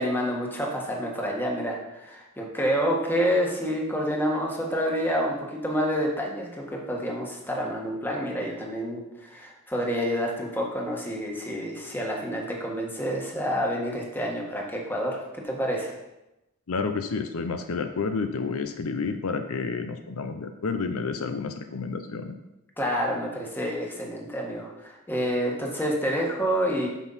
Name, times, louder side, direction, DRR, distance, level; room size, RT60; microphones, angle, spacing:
voice 1, 0.0-15.9 22.8-26.9, equal, 10° left, -1 dB, 1.5 m, -28 dB
voice 2, 16.7-22.4, left 4 dB, 70° left, 8 dB, 0.6 m, -30 dB
9.1 x 6.2 x 4.1 m, 0.94 s
head